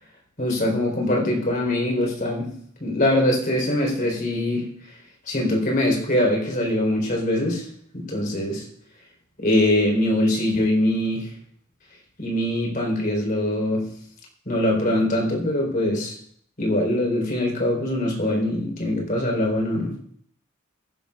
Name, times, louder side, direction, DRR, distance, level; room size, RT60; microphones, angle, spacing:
voice 1, 0.4-2.5 2.8-4.7 5.3-7.6 7.9-8.6 9.4-11.3 12.2-13.8 14.5-16.1 16.6-19.9, left 1 dB, 45° left, 0 dB, 3.8 m, -22 dB
23.0 x 11.0 x 2.4 m, 0.63 s
head